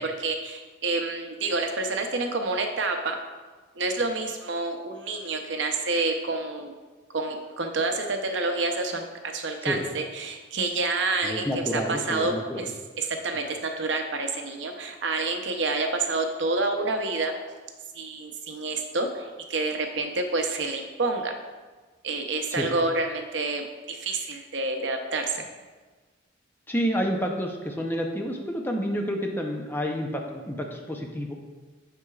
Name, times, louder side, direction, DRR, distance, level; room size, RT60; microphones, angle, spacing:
voice 1, 0.0-3.2 3.8-6.7 7.1-12.7 13.0-17.3 17.9-21.3 22.0-25.5, right 3 dB, 65° right, 4 dB, 0.7 m, -28 dB
voice 2, 11.2-12.7 22.5-22.7 26.7-31.3, equal, 10° left, 1 dB, 0.6 m, -29 dB
7.8 x 6.8 x 2.4 m, 1.3 s
head